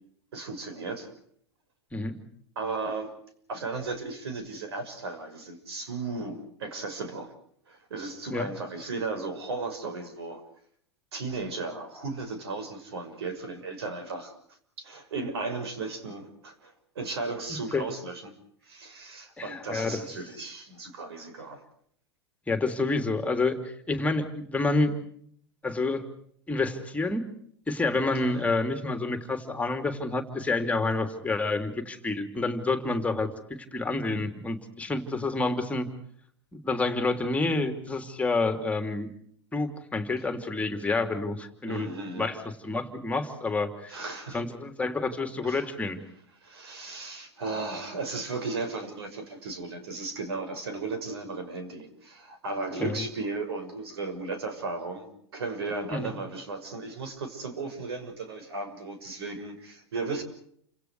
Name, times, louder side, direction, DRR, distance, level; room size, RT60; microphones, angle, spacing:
voice 1, 0.3-1.1 2.6-3.1 3.5-7.3 7.7-10.4 11.1-14.3 14.8-18.4 18.6-21.6 28.1-28.5 41.7-42.3 43.9-44.4 45.4-45.7 46.4-60.2, right 3 dB, 70° right, 9 dB, 6.2 m, -35 dB
voice 2, 19.4-20.0 22.5-24.9 25.6-26.0 26.5-27.2 27.7-33.3 33.7-35.9 36.5-39.1 39.5-41.9 42.2-44.0 44.3-46.0 52.8-53.0 55.9-56.1, left 3 dB, 10° left, 7 dB, 3.1 m, -28 dB
29.5 x 27.0 x 4.8 m, 0.65 s
hypercardioid pair, 100°, 14 cm